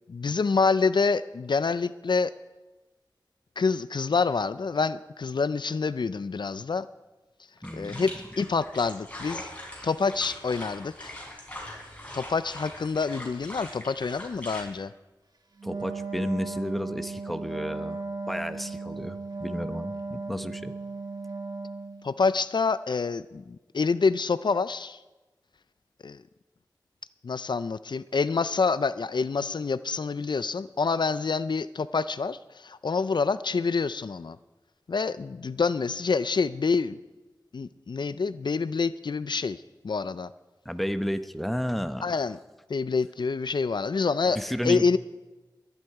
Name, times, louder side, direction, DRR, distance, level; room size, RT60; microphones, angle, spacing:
voice 1, 0.1-2.3 3.6-6.9 7.7-9.5 9.8-11.1 12.1-14.9 22.0-25.0 26.0-26.2 27.2-34.4 34.9-37.0 37.5-40.3 42.0-42.4 42.7-45.0, left 4 dB, 80° left, 15 dB, 0.4 m, -27 dB
sound 1, 7.6-14.6, left 1 dB, 20° left, 5.5 m, -42 dB
voice 2, 7.6-8.1 15.6-18.0 18.3-20.7 40.6-42.2 44.3-44.8, equal, ahead, 10 dB, 0.9 m, -32 dB
Wind instrument woodwind instrument, 15.6-22.1, right 3 dB, 65° right, 1.5 m, -36 dB
21.5 x 11.0 x 4.8 m, 1.1 s
wide cardioid pair, 50°, 8 cm